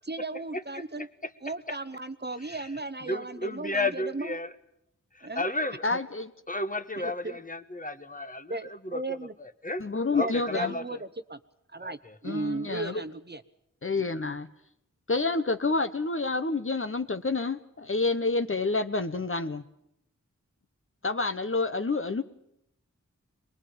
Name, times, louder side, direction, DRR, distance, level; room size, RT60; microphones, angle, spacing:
voice 1, 0.1-1.1 1.4-4.4 5.2-5.5 7.0-7.4 8.5-9.3 10.1-11.4 11.7-13.4 14.0-14.1, right 2 dB, 35° right, 12 dB, 0.9 m, -36 dB
voice 2, 3.1-4.5 5.1-5.8 6.5-8.6 8.8-9.0 9.6-9.8 10.1-10.8 11.8-11.9, left 2 dB, 25° left, 10 dB, 1.4 m, -32 dB
voice 3, 5.8-6.3 9.8-10.8 12.2-13.0 13.8-14.5 15.1-19.6 21.0-22.2, left 3 dB, 45° left, 10 dB, 1.0 m, -28 dB
23.5 x 20.5 x 8.8 m, 0.80 s
wide cardioid pair, 70°, 30 cm